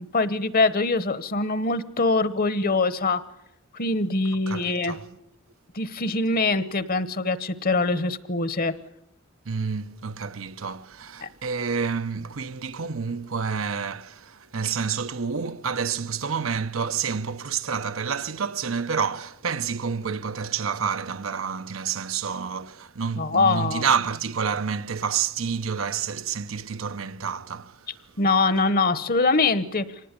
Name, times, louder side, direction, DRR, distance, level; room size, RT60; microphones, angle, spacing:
voice 1, 0.0-3.2 3.7-5.0 5.7-8.7 11.2-11.3 23.2-23.8 28.2-29.9, left 3 dB, 45° left, 1.1 m, -23 dB
voice 2, 4.5-5.1 9.5-28.0, right 6 dB, 80° right, 0.8 m, -29 dB
25.0 x 19.0 x 8.3 m
head